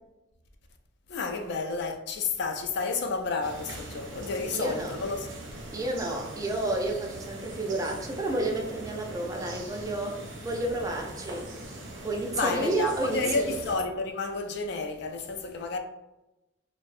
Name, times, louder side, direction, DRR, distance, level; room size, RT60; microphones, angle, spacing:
voice 1, 1.1-5.4 12.3-15.8, left 4 dB, 60° left, 0.3 m, -31 dB
sound 1, 3.4-13.8, right 1 dB, 80° right, 0.6 m, -42 dB
voice 2, 4.5-4.9 5.7-11.5 12.0-13.6, right 2 dB, 20° right, 0.3 m, -31 dB
2.6 x 2.0 x 2.4 m
head